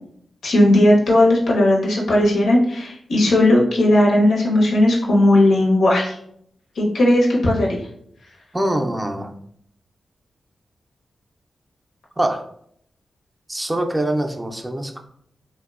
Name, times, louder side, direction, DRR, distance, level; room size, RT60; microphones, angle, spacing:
voice 1, 0.4-6.2 6.8-7.8, left 1 dB, 90° left, -3 dB, 0.6 m, -16 dB
voice 2, 8.5-9.3 12.2-12.5 13.5-15.0, right 1 dB, 20° right, 3 dB, 0.3 m, -23 dB
2.7 x 2.1 x 2.3 m, 0.69 s
cardioid pair, 60°, 0 cm